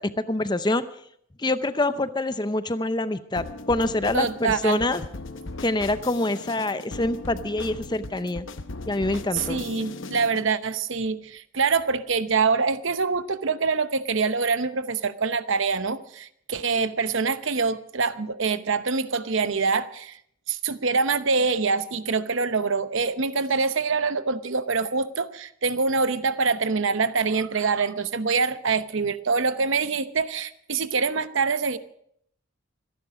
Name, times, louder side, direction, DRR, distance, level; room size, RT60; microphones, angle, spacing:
voice 1, 0.2-0.9 1.4-5.0 5.6-8.4 8.9-9.6, left 2 dB, 20° left, 12 dB, 0.6 m, -26 dB
sound 1, 3.4-10.5, left 2 dB, 60° left, 0.9 m, -38 dB
voice 2, 4.1-4.8 9.3-20.2 20.5-31.8, right 4 dB, 65° right, 12 dB, 0.8 m, -25 dB
25.0 x 11.0 x 5.0 m, 0.68 s
head